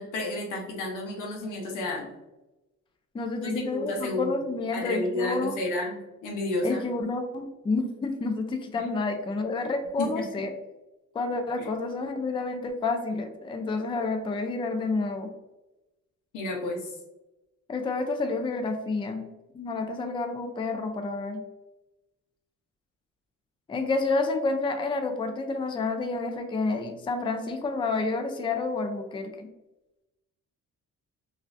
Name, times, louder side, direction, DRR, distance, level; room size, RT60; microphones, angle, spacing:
voice 1, 0.0-2.1 3.4-4.3 4.7-6.8 10.0-10.2 11.6-11.7 16.3-16.9, left 1 dB, 85° left, 1 dB, 0.9 m, -31 dB
voice 2, 3.1-5.6 6.6-10.5 11.1-15.3 17.7-19.2 19.5-21.4 23.7-29.5, left 3 dB, 15° left, 6 dB, 0.4 m, -29 dB
3.0 x 2.6 x 2.4 m, 1.0 s
cardioid pair, 90°, 30 cm